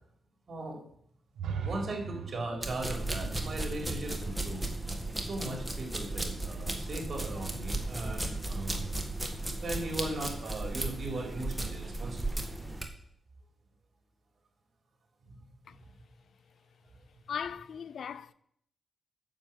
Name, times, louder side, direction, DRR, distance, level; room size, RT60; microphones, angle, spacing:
sound 1, 1.3-5.2, right 6 dB, 90° right, 1.2 m, -41 dB
voice 1, 1.6-4.6 5.2-8.9 9.6-12.4 15.3-15.4, right 2 dB, 50° right, 4.2 m, -38 dB
sound 2, 2.6-12.9, right 2 dB, 10° right, 1.8 m, -35 dB
voice 2, 17.3-18.3, left 7 dB, 70° left, 0.5 m, -38 dB
9.0 x 7.2 x 7.8 m
cardioid pair, 75°, 0 cm